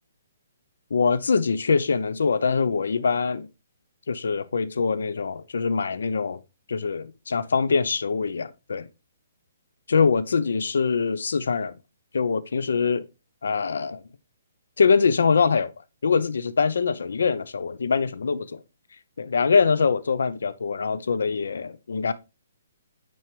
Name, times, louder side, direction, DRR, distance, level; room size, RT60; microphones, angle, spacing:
voice 1, 0.9-3.5 4.1-6.4 6.7-8.9 9.9-11.7 12.1-13.0 13.4-14.0 14.8-15.7 16.0-18.6 19.2-22.1, left 5 dB, 80° left, 0.7 m, -23 dB
9.3 x 4.5 x 3.2 m
hypercardioid pair, 175°, 0 cm